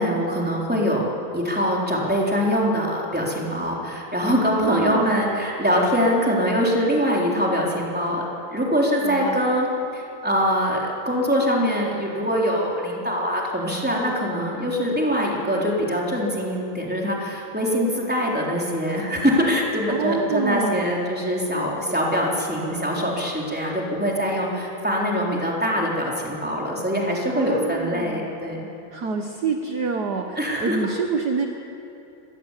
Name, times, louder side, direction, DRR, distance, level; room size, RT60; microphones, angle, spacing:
voice 1, 0.0-8.3 8.5-9.7 9.9-28.6 30.4-30.9, equal, 5° right, -3 dB, 3.7 m, -23 dB
voice 2, 4.5-5.2 9.0-9.4 19.9-20.9 27.3-28.3 28.9-31.5, right 5 dB, 55° right, 4 dB, 1.6 m, -27 dB
24.5 x 19.0 x 8.3 m, 2.9 s
omnidirectional pair, 2.4 m